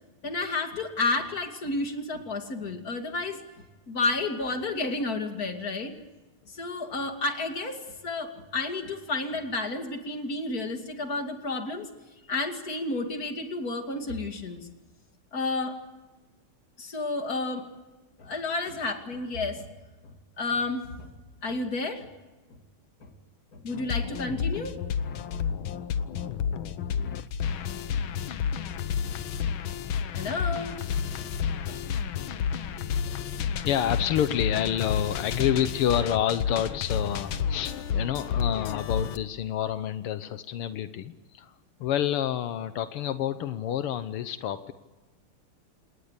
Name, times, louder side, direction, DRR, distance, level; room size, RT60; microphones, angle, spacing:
voice 1, 0.2-3.4 3.9-5.9 6.5-11.9 12.3-14.7 15.3-15.8 16.8-17.6 18.2-19.7 20.0-21.1 21.4-22.1 22.5-22.6 23.0-23.1 23.5-24.8 25.1-25.2 25.6-25.7 27.1-27.2 27.6-27.7 28.1-28.2 28.6-28.7 29.1-29.2 30.1-30.8 31.2-31.3 31.7-31.8 32.2-32.3 32.6-32.8, left 3 dB, 40° left, 5 dB, 3.0 m, -31 dB
sound 1, 23.7-39.2, left 7 dB, 70° left, 1.8 m, -30 dB
voice 2, 33.6-41.5 41.8-44.7, left 10 dB, 85° left, 11 dB, 1.9 m, -28 dB
27.5 x 20.0 x 8.3 m, 1.2 s
omnidirectional pair, 2.4 m